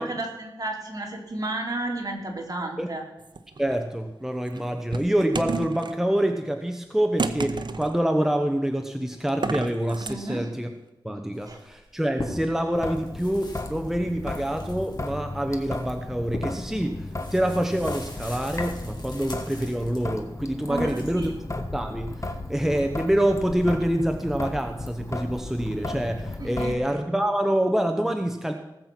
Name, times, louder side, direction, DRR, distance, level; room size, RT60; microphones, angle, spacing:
voice 1, 0.0-3.0 10.0-10.5 11.4-11.6 20.7-21.4 26.4-26.8, right 2 dB, 45° right, 0 dB, 3.0 m, -32 dB
sound 1, 3.2-3.8 4.5-6.0 7.2-8.0 9.3-10.2, right 4 dB, 65° right, 0.8 m, -31 dB
voice 2, 3.6-10.7 11.0-21.3 21.7-28.5, right 1 dB, 5° right, 5 dB, 0.9 m, -26 dB
sound 2, 11.3-12.6 12.9-20.2 20.6-21.3, left 1 dB, 55° left, 3.5 m, -41 dB
Traffic noise roadway noise / Drip / Trickle dribble, 12.7-26.7, left 2 dB, 40° left, 1.3 m, -35 dB
18.0 x 7.6 x 6.0 m, 0.94 s
wide cardioid pair, 90°, 8 cm